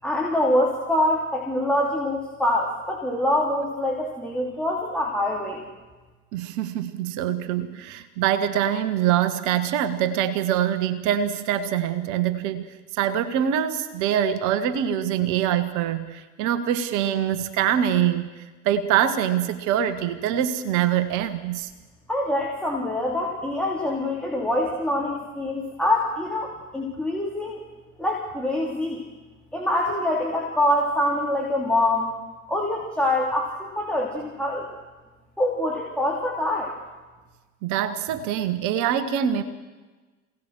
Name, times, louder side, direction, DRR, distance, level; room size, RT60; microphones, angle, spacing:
voice 1, 0.0-5.6 22.1-27.6 28.0-29.0 29.5-32.1 32.5-34.7 35.4-36.7, left 1 dB, 5° left, -3 dB, 3.9 m, -25 dB
voice 2, 6.3-12.6 12.9-18.3 18.6-21.7 37.6-39.4, right 10 dB, 50° right, 11 dB, 1.7 m, -24 dB
27.5 x 18.0 x 6.5 m, 1.3 s
figure-of-eight pair, 70°, 37 cm